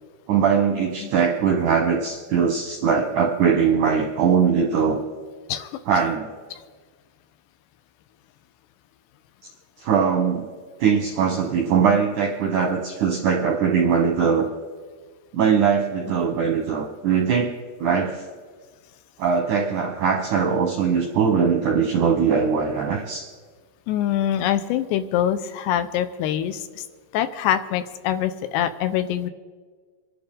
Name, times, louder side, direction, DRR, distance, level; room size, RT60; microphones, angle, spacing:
voice 1, 0.3-5.0 5.9-6.3 9.8-10.5 10.8-14.5 15.3-17.5 17.8-18.2 19.2-23.3, right 6 dB, 75° right, 2 dB, 1.8 m, -21 dB
voice 2, 5.5-5.8 6.5-6.6 23.9-26.7 27.1-29.3, left 10 dB, 85° left, 11 dB, 2.7 m, -24 dB
26.0 x 11.5 x 3.7 m, 1.5 s
omnidirectional pair, 5.0 m